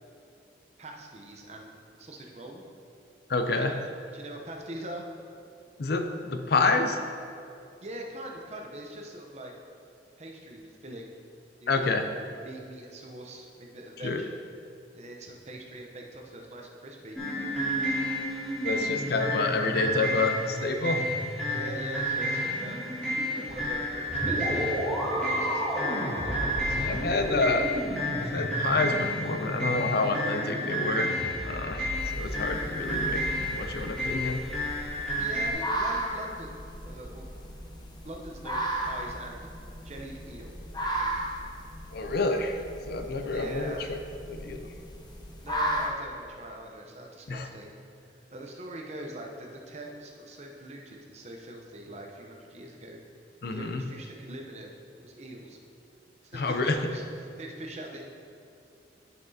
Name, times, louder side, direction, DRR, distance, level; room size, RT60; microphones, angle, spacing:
voice 1, 0.8-2.6 3.6-3.8 4.1-5.0 7.8-9.5 10.2-11.1 11.6-14.3 14.9-17.2 21.4-22.9 23.3-24.8 25.1-25.7 26.1-26.9 35.2-37.5 38.0-39.4 39.8-40.5 40.8-41.3 43.3-44.0 45.4-53.0 53.5-54.7 54.9-55.6 56.2-58.0, right 1 dB, 35° right, 1 dB, 0.7 m, -43 dB
voice 2, 3.3-3.8 5.8-7.0 11.7-12.1 14.0-14.2 18.6-21.0 26.9-27.6 28.2-31.2 31.4-34.4 41.9-42.6 42.9-43.7 44.3-44.6 47.3-47.5 53.4-53.8 56.3-56.9, left 3 dB, 55° left, 6 dB, 0.5 m, -28 dB
sound 1, 17.2-35.5, equal, 5° left, 1.9 m, -30 dB
sound 2, 31.9-45.9, right 1 dB, 25° left, 0.7 m, -36 dB
10.5 x 5.8 x 2.8 m, 2.5 s
head